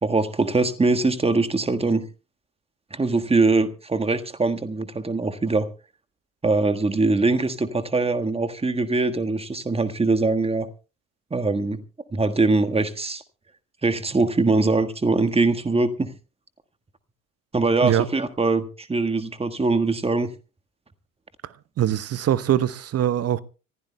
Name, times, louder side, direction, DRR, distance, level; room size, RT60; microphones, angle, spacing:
voice 1, 0.0-2.0 2.9-5.7 6.4-10.7 11.3-11.8 12.1-13.2 13.8-16.1 17.5-20.3, right 3 dB, 15° right, 1.5 m, -22 dB
voice 2, 21.8-23.4, right 11 dB, 35° right, 1.0 m, -22 dB
25.5 x 15.5 x 2.2 m
figure-of-eight pair, 55°, 41 cm